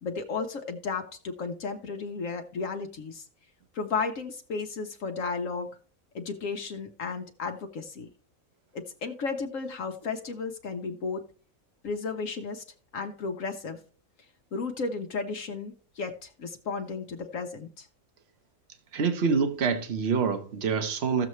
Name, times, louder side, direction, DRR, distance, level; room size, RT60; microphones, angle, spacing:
voice 1, 0.0-3.3 3.7-5.8 6.1-8.1 8.7-11.2 11.8-12.6 12.9-13.8 14.5-17.9, left 4 dB, 70° left, 1.2 m, -34 dB
voice 2, 18.9-21.3, right 5 dB, 50° right, 1.3 m, -26 dB
15.0 x 6.8 x 3.1 m
omnidirectional pair, 1.5 m